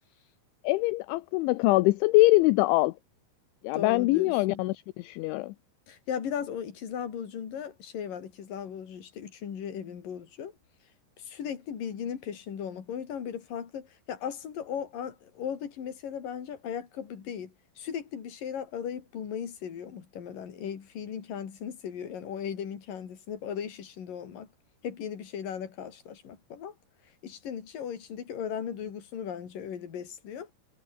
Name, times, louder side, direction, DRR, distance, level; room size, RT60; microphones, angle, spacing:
voice 1, 0.6-2.9 3.6-5.5, left 20 dB, 80° left, 3.0 m, -23 dB
voice 2, 3.7-4.7 5.9-10.5 11.3-24.5 24.8-26.7 27.2-30.5, left 8 dB, 45° left, 4.4 m, -37 dB
omnidirectional pair, 5.8 m